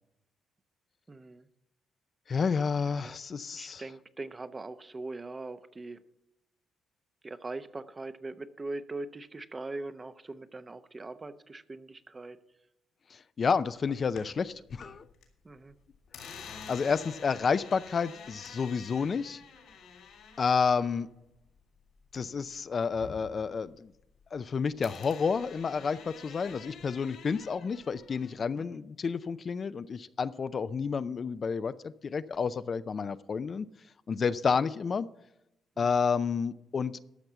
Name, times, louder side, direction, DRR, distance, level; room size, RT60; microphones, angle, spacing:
voice 1, 1.1-1.5 2.8-3.2 3.5-6.0 7.2-12.4 15.4-15.8 28.6-28.8 34.5-34.6 35.8-36.0, right 2 dB, 25° right, 11 dB, 0.8 m, -41 dB
voice 2, 2.3-3.8 13.1-15.1 16.7-19.4 20.4-21.1 22.1-23.9 24.3-33.7 34.1-35.1 35.8-37.0, left 5 dB, 45° left, 13 dB, 0.5 m, -30 dB
sound 1, 13.8-15.3 15.6-22.5 22.8-24.5 24.8-28.3, left 6 dB, 80° left, 3.0 m, -49 dB
13.0 x 6.1 x 6.9 m, 0.86 s
cardioid pair, 90°, 0 cm